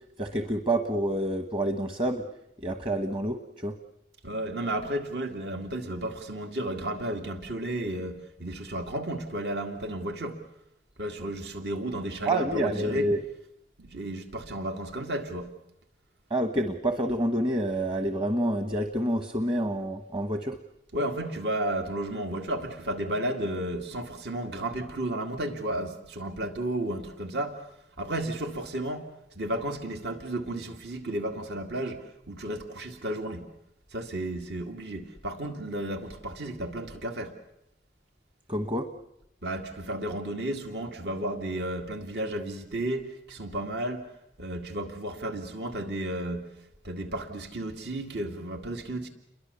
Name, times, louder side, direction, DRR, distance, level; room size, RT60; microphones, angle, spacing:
voice 1, 0.2-2.2 2.6-3.7 12.2-13.2 16.3-20.6 38.5-38.8, right 1 dB, 30° right, 7 dB, 1.2 m, -28 dB
voice 2, 4.2-10.4 11.0-13.1 13.8-15.5 20.9-27.7 28.0-29.1 29.4-33.5 33.9-37.4 39.4-44.1 44.4-46.5 46.8-49.1, right 1 dB, 70° right, 5 dB, 2.3 m, -33 dB
29.5 x 22.5 x 6.9 m, 0.82 s
head